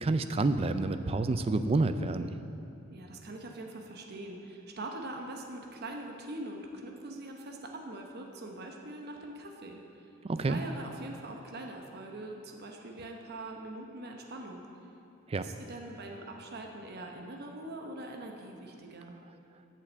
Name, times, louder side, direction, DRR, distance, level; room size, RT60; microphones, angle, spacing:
voice 1, 0.0-2.3 10.2-10.6 15.3-15.5, right 3 dB, 25° right, 10 dB, 0.3 m, -28 dB
voice 2, 2.9-9.8 10.4-14.7 15.4-19.1, right 2 dB, 50° right, 2 dB, 0.8 m, -43 dB
8.5 x 5.6 x 7.4 m, 2.7 s
head